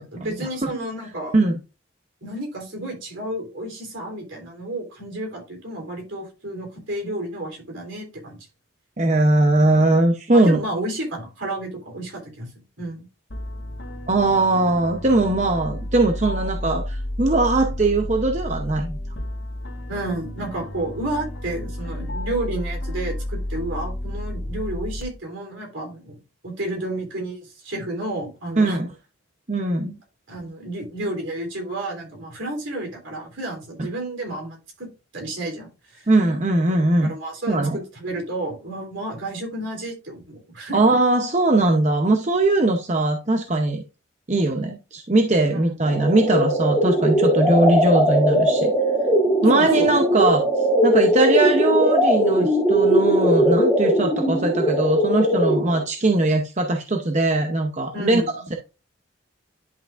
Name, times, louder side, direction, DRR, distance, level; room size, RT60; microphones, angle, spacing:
voice 1, 0.0-1.3 2.2-8.4 10.3-12.5 12.8-13.1 19.9-26.2 26.4-28.8 30.3-36.1 37.0-40.8 45.5-45.8 49.5-50.0 57.9-58.3, right 1 dB, 65° right, 2 dB, 3.4 m, -31 dB
voice 2, 9.0-10.6 14.1-19.0 28.6-28.9 29.5-30.0 36.1-37.1 37.5-37.8 40.7-43.8 44.3-48.7 49.4-50.4 50.8-58.2, right 2 dB, 35° right, 3 dB, 0.7 m, -20 dB
sound 1, 13.3-25.0, left 1 dB, 60° left, 1.5 m, -31 dB
sound 2, 45.9-55.8, equal, 10° left, 2.3 m, -19 dB
10.5 x 5.8 x 2.5 m, 0.30 s
head